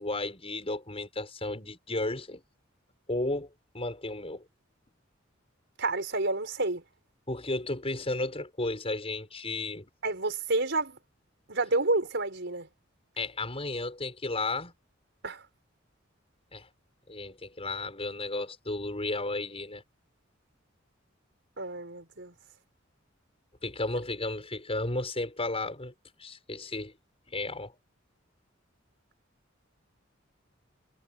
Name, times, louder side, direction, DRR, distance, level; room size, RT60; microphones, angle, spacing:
voice 1, 0.0-2.4 3.1-3.5 3.7-4.4 7.3-9.9 13.2-14.7 16.5-16.7 17.1-19.8 23.6-25.9 26.2-26.9 27.3-27.7, left 2 dB, 30° left, 6.4 m, -33 dB
voice 2, 5.8-6.8 10.0-11.0 11.5-12.7 15.2-15.4 21.6-22.3, right 2 dB, 65° right, 6.1 m, -29 dB
head